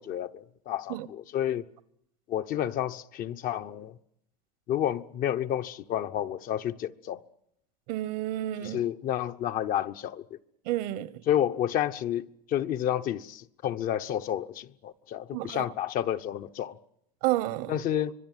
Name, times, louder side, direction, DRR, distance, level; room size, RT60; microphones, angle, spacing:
voice 1, 0.0-1.6 2.3-3.9 4.7-7.2 8.6-10.4 11.3-16.8 17.7-18.1, left 11 dB, 45° left, 0.9 m, -30 dB
voice 2, 7.9-8.8 10.7-11.1 15.3-15.7 17.2-17.7, right 15 dB, 65° right, 1.2 m, -30 dB
25.0 x 19.0 x 9.2 m
supercardioid pair, 115°, 20 cm